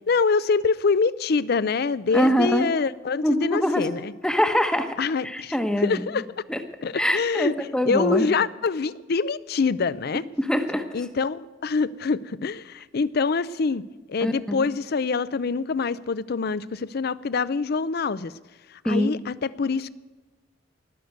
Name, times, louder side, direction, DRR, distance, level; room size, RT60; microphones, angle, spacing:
voice 1, 0.1-4.1 5.0-6.3 6.8-10.2 10.9-13.8 14.1-18.3 18.7-19.9, left 4 dB, 55° left, 18 dB, 0.5 m, -25 dB
voice 2, 2.1-2.7 3.2-3.9 4.2-4.9 5.2-6.0 6.5-6.6 6.9-8.3 10.4-10.8 14.2-14.7 18.8-19.1, equal, 5° left, 6 dB, 1.0 m, -23 dB
19.5 x 6.6 x 9.1 m, 1.3 s
head